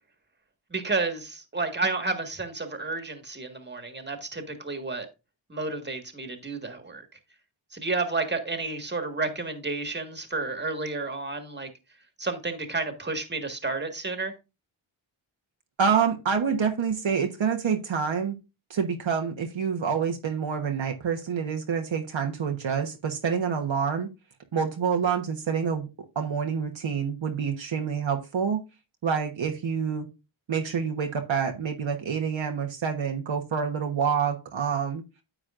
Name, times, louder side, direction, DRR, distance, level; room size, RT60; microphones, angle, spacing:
voice 1, 0.7-5.1 5.5-7.1 7.7-11.7 12.2-14.3, right 3 dB, 20° right, 1.8 m, -31 dB
voice 2, 15.8-18.4 18.7-24.1 24.5-25.9 26.1-28.6 29.0-30.1 30.5-35.0, right 6 dB, 65° right, 1.2 m, -27 dB
10.0 x 7.2 x 2.5 m
cardioid pair, 65°, 50 cm